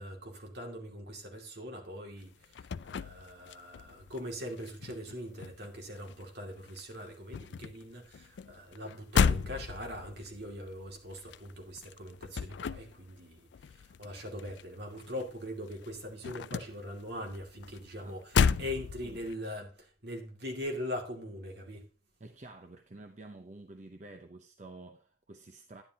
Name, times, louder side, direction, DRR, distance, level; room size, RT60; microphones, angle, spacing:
voice 1, 0.0-21.9, left 1 dB, 60° right, 2.4 m, -41 dB
sound 1, 2.2-4.2 4.5-6.4 6.7-15.4 15.6-19.4, left 6 dB, 70° left, 0.4 m, -33 dB
voice 2, 18.0-18.7 19.0-19.2 22.2-25.8, right 2 dB, 40° right, 0.7 m, -49 dB
10.5 x 9.9 x 2.9 m
head